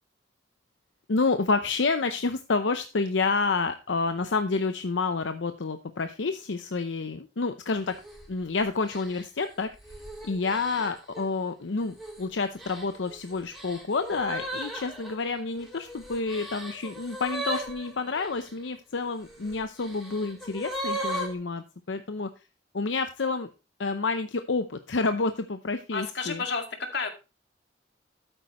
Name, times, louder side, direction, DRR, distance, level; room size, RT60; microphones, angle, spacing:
voice 1, 1.1-8.0 8.3-9.7 10.2-22.3 22.7-23.5 23.8-26.4, left 4 dB, 90° left, 9 dB, 0.7 m, -29 dB
sound 1, 7.9-8.3 8.9-11.2 11.8-12.2 12.6-18.5 19.3-21.3, right 1 dB, ahead, 4.0 m, -37 dB
voice 2, 25.9-27.1, left 4 dB, 65° left, 5 dB, 2.1 m, -31 dB
12.0 x 9.0 x 3.0 m, 0.29 s
head